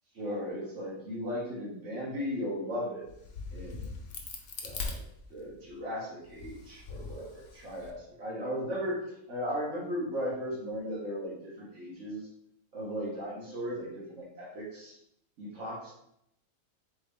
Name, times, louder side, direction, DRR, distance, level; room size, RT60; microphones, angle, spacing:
voice 1, 0.1-3.0 3.5-3.9 4.6-5.0 5.3-9.0 9.3-12.3 12.7-15.0 15.4-15.9, equal, 60° right, -7 dB, 1.4 m, -36 dB
Crack, 3.1-5.7 6.2-7.9, left 4 dB, 60° left, 0.8 m, -41 dB
3.9 x 3.4 x 3.5 m, 0.77 s
omnidirectional pair, 1.4 m